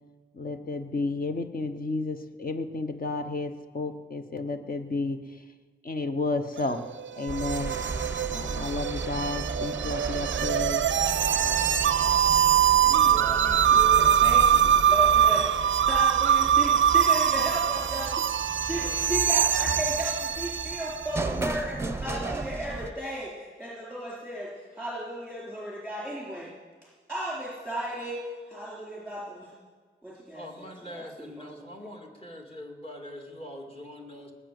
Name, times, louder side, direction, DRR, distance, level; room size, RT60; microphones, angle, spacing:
voice 1, 0.3-5.4 5.8-7.8 8.3-10.8, left 3 dB, 45° left, 7 dB, 1.1 m, -32 dB
sound 1, 6.6-21.2, right 9 dB, 70° right, 0.4 m, -23 dB
sound 2, 7.3-22.9, right 3 dB, 10° right, 0.7 m, -35 dB
voice 2, 12.8-18.1 18.7-26.5 27.1-29.5 30.0-31.9, right 1 dB, 5° left, -6 dB, 4.1 m, -35 dB
voice 3, 30.3-34.3, left 1 dB, 30° left, 1 dB, 2.3 m, -43 dB
19.0 x 8.2 x 7.8 m, 1.5 s
wide cardioid pair, 155°, 20 cm